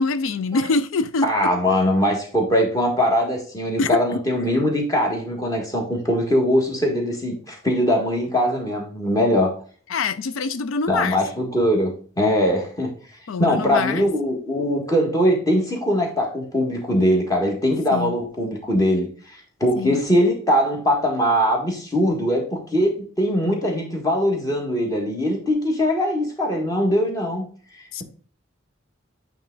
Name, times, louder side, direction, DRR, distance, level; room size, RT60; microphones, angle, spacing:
voice 1, 0.0-1.3 3.8-4.2 9.9-11.2 13.3-14.1 17.9-18.2 19.8-20.0 27.9-28.0, left 4 dB, 85° left, 0.4 m, -24 dB
voice 2, 1.2-9.5 10.9-12.9 13.4-27.4, equal, 20° left, 1.6 m, -21 dB
8.6 x 3.5 x 3.8 m
head